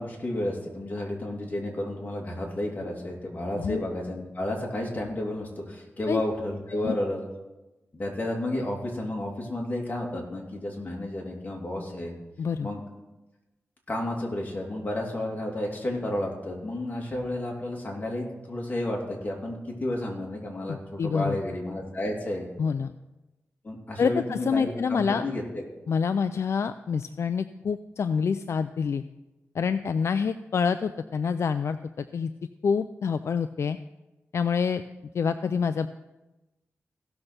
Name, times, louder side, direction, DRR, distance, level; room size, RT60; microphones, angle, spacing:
voice 1, 0.0-7.3 7.9-12.1 12.6-12.8 13.9-22.5 23.6-25.6, left 1 dB, 35° left, -2 dB, 2.8 m, -31 dB
voice 2, 12.4-12.7 20.7-21.4 22.6-22.9 24.0-25.2 25.9-29.0 29.5-32.3 32.6-33.8 34.3-34.8 35.1-35.9, left 6 dB, 65° left, 11 dB, 0.4 m, -27 dB
16.0 x 6.5 x 4.4 m, 1.1 s
wide cardioid pair, 85°, 5 cm